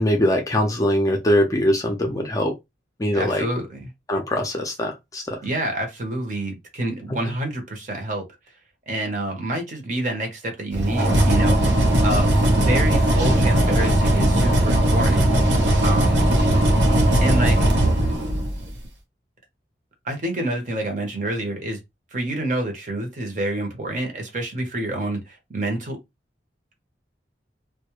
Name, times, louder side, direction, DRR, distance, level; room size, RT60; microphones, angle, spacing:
voice 1, 0.0-2.5 3.0-3.5 4.1-5.4, left 1 dB, 20° left, 0.5 m, -22 dB
voice 2, 3.1-3.9 5.4-8.2 8.9-15.2 15.8-16.3 17.2-17.9 20.0-21.8 22.1-26.0, right 1 dB, 45° right, 0.8 m, -28 dB
sound 1, 10.7-18.7, right 1 dB, 75° right, 0.8 m, -18 dB
2.2 x 2.1 x 2.9 m
head